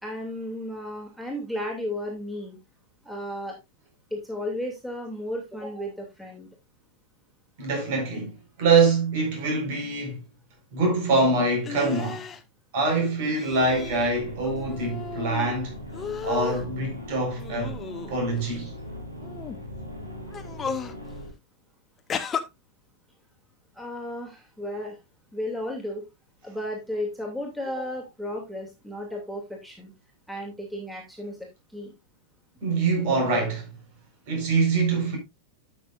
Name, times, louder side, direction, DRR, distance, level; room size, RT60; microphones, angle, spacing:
voice 1, 0.0-2.6 3.0-3.6 4.1-6.5 8.8-8.9 23.8-25.0 25.3-26.1 26.4-29.9 30.3-31.9, left 1 dB, ahead, 2.8 m, -34 dB
voice 2, 7.6-10.2 10.7-12.2 12.7-15.8 16.2-17.8 18.1-18.7 32.6-33.7 34.3-35.2, right 3 dB, 50° right, 4.9 m, -24 dB
sound 1, 11.6-12.4 13.3-14.1 14.4-15.5 15.9-16.7 17.4-18.5 19.2-19.6 20.3-21.0 22.1-22.4, left 7 dB, 20° left, 1.0 m, -34 dB
sound 2, 13.5-21.3, equal, 80° right, 2.7 m, -39 dB
12.5 x 7.0 x 2.6 m
figure-of-eight pair, 90°, 0 cm